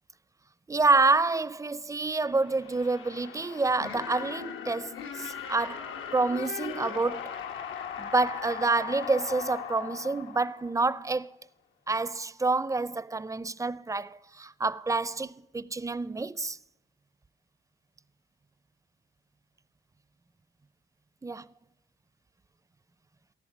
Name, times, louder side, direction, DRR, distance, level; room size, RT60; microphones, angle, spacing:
voice 1, 0.7-7.3 8.0-11.4 11.9-16.6 21.2-21.5, right 3 dB, 15° right, 0.6 m, -28 dB
sound 1, 2.2-11.1, left 8 dB, 80° left, 1.6 m, -39 dB
13.0 x 11.0 x 9.1 m
cardioid pair, 90°, 20 cm